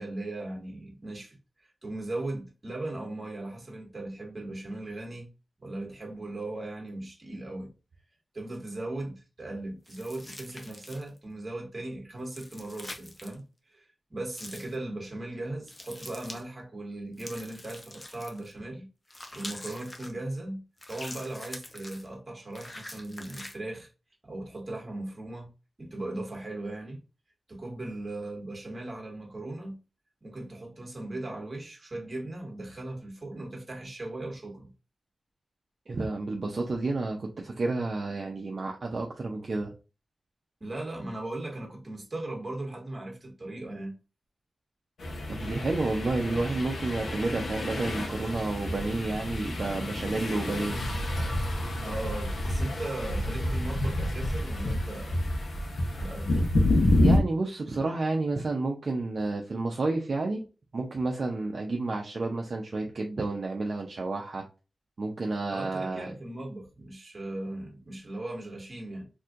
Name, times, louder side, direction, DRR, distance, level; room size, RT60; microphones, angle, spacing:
voice 1, 0.0-1.4 1.8-5.3 5.6-7.7 8.3-13.4 13.7-13.8 14.1-18.9 19.3-23.9 24.2-25.5 25.8-27.0 27.5-29.8 30.2-34.7 40.6-44.0 51.8-55.2 55.9-56.5 65.5-69.0, right 2 dB, 30° right, 1.4 m, -38 dB
sound 1, 9.9-11.2 12.2-13.4 14.3-14.8 15.7-16.4 17.2-18.5 19.1-20.1 20.8-22.1 22.5-23.6, left 1 dB, 25° left, 0.7 m, -44 dB
voice 2, 35.9-39.7 45.3-50.8 57.0-60.4 60.7-64.4 65.0-66.1, right 3 dB, 50° right, 0.6 m, -30 dB
sound 2, 45.0-57.2, left 1 dB, 80° left, 0.9 m, -29 dB
4.2 x 2.7 x 2.4 m
wide cardioid pair, 145°, 0 cm